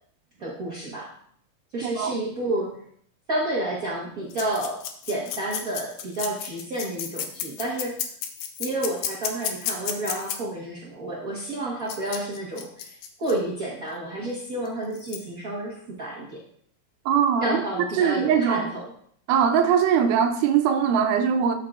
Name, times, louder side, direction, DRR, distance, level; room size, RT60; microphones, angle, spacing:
voice 1, 0.4-1.1 1.7-2.7 3.3-4.8 5.1-7.9 8.6-16.4 17.4-18.8, right 1 dB, 60° right, -6 dB, 0.9 m, -30 dB
voice 2, 1.8-2.2 17.1-17.6 18.0-18.7 19.3-21.5, right 7 dB, 80° right, 7 dB, 2.2 m, -21 dB
sound 1, 4.3-10.4 11.9-13.4 14.7-14.8 15.0-15.2, left 9 dB, 75° left, 2.1 m, -32 dB
13.0 x 5.6 x 2.4 m, 0.64 s
omnidirectional pair, 3.8 m